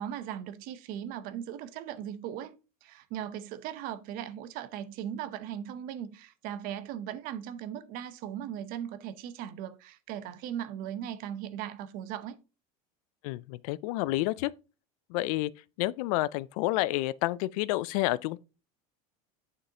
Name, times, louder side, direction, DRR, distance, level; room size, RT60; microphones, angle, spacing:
voice 1, 0.0-12.4, right 10 dB, 50° right, 0.8 m, -38 dB
voice 2, 13.2-14.5 15.1-15.5 15.8-18.4, left 18 dB, 75° left, 0.4 m, -29 dB
8.9 x 6.5 x 2.8 m
cardioid pair, 160°, 19 cm